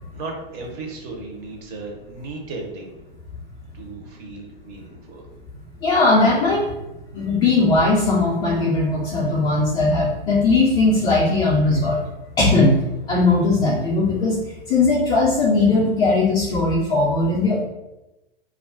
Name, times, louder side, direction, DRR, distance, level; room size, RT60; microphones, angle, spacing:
voice 1, 0.1-2.9 3.7-5.2, right 3 dB, 35° right, 1 dB, 0.6 m, -35 dB
voice 2, 5.8-6.7 7.1-12.0 12.4-12.7 13.1-14.4 14.7-17.6, left 3 dB, 15° left, -6 dB, 0.3 m, -18 dB
2.3 x 2.0 x 3.5 m, 0.98 s
hypercardioid pair, 110°, 30 cm